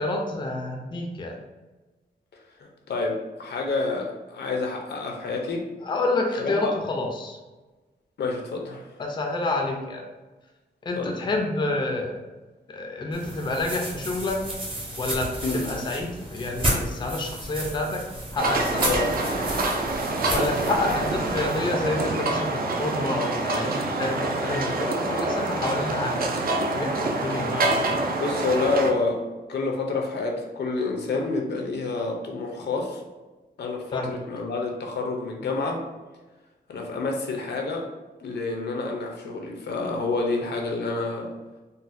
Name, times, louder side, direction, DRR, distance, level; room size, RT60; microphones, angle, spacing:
voice 1, 0.0-1.4 5.8-7.4 9.0-10.0 10.8-12.2 12.7-14.4 15.0-18.0 18.3-19.0 20.3-26.4 26.7-28.1 33.9-34.1, left 2 dB, 30° left, 1 dB, 0.4 m, -28 dB
voice 2, 2.6-5.7 6.4-6.7 8.2-8.9 11.0-11.2 15.4-15.7 18.8-19.1 28.2-29.2 29.5-33.0 33.6-35.8 36.7-37.9 38.2-41.3, left 3 dB, 80° left, 1 dB, 0.6 m, -28 dB
sound 1, 13.1-21.7, right 1 dB, 30° right, 0.7 m, -32 dB
sound 2, 18.4-28.9, right 2 dB, 60° right, 0.4 m, -26 dB
3.9 x 2.1 x 2.5 m, 1.2 s
wide cardioid pair, 155°, 17 cm